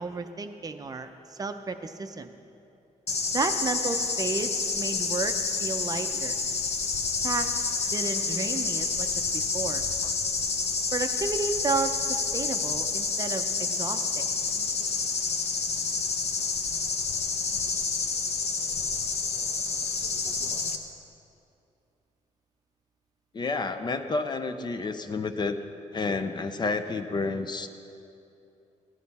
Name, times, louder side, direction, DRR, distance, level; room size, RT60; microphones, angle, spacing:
voice 1, 0.0-2.3 3.3-6.4 7.2-7.6 7.9-9.8 10.9-14.3, right 4 dB, 30° right, 7 dB, 0.6 m, -32 dB
sound 1, 3.1-20.8, left 4 dB, 55° left, 0.9 m, -29 dB
voice 2, 23.3-25.6 25.9-27.7, left 3 dB, 35° left, 8 dB, 0.6 m, -30 dB
15.5 x 10.5 x 4.1 m, 2.7 s
cardioid pair, 135°, 13 cm